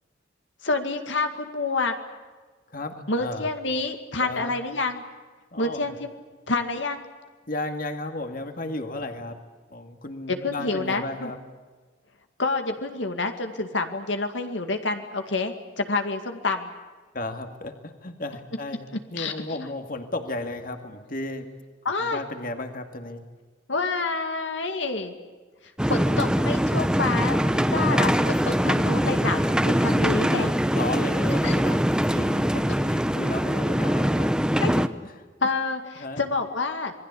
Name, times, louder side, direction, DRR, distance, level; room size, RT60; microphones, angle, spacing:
voice 1, 0.6-1.9 3.1-5.0 5.6-6.1 6.5-7.0 10.3-11.3 12.4-16.7 19.2-19.3 21.9-22.2 23.7-25.1 25.9-30.5 31.4-31.5 34.6-34.7 35.4-36.9, left 3 dB, 75° left, 6 dB, 2.1 m, -28 dB
voice 2, 2.7-3.5 4.2-4.5 5.5-5.9 7.5-9.4 9.7-11.4 17.1-21.5 22.0-23.2 30.4-35.1 36.0-36.2, left 2 dB, 50° left, 6 dB, 2.2 m, -34 dB
sound 1, 25.8-34.9, equal, 5° right, 0.9 m, -23 dB
27.5 x 22.0 x 8.5 m, 1.4 s
head